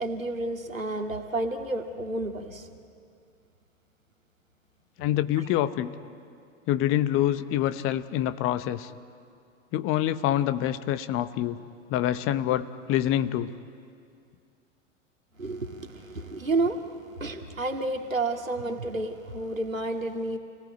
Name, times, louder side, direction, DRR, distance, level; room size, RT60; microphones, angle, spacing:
voice 1, 0.0-2.7 15.4-16.8 17.2-20.4, right 2 dB, 90° right, 4 dB, 2.1 m, -30 dB
voice 2, 5.0-5.9 6.7-8.9 9.7-11.6 11.9-13.5, left 12 dB, 35° left, 13 dB, 1.0 m, -26 dB
28.5 x 18.0 x 9.2 m, 2.4 s
figure-of-eight pair, 95°, 39 cm